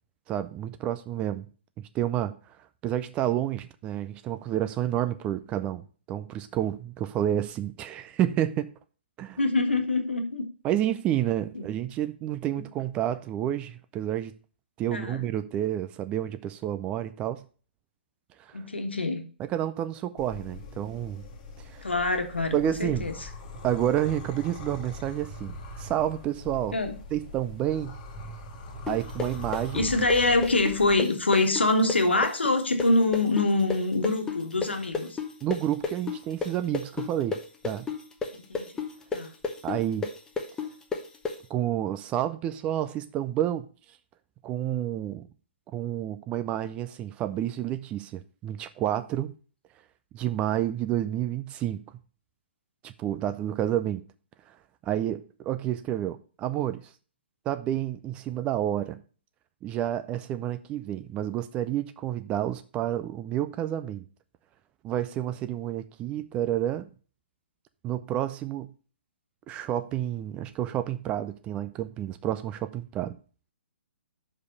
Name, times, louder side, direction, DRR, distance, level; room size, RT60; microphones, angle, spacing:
voice 1, 0.3-1.5 1.9-2.3 2.8-8.7 9.2-9.4 10.6-14.3 14.8-17.4 18.4-18.6 19.4-21.2 21.6-21.8 22.5-23.1 23.6-26.8 27.1-28.0 28.9-29.8 35.4-37.9 39.6-40.1 41.5-43.7 44.4-45.3 45.7-49.3 50.1-51.8 52.8-54.0 54.5-54.6 54.8-56.9 57.5-59.0 59.6-64.1 64.8-66.9 67.8-68.7 69.5-73.2, right 12 dB, 20° right, 0.4 m, -29 dB
voice 2, 9.4-10.5 11.5-11.6 12.5-12.6 14.9-15.2 18.5-19.2 21.8-23.1 26.7-27.0 29.7-35.2 38.5-38.7 39.1-39.3, left 2 dB, 75° left, 1.5 m, -25 dB
sound 1, 20.2-31.0, left 1 dB, 35° left, 1.5 m, -41 dB
sound 2, 28.9-36.5 36.7-41.3, left 4 dB, 10° left, 0.9 m, -31 dB
5.5 x 4.8 x 6.5 m
figure-of-eight pair, 125°, 6 cm